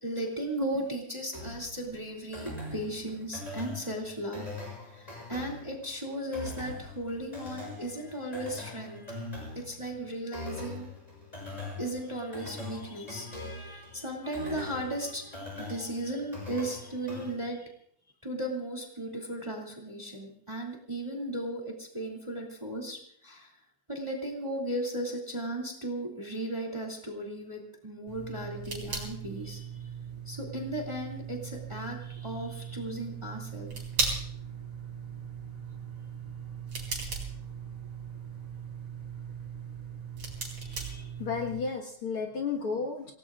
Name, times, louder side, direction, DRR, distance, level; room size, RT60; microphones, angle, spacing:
voice 1, 0.0-4.5 4.9-9.2 9.5-10.9 11.8-17.7 18.2-23.5 23.9-29.9 30.3-33.7, right 1 dB, 10° right, 0 dB, 2.1 m, -36 dB
sound 1, 1.3-17.3, left 2 dB, 10° left, 7.0 m, -42 dB
sound 2, 28.1-41.6, right 5 dB, 50° right, 4.9 m, -38 dB
voice 2, 40.6-43.1, left 5 dB, 50° left, 0 dB, 2.2 m, -33 dB
27.5 x 18.0 x 2.5 m, 0.65 s
omnidirectional pair, 3.4 m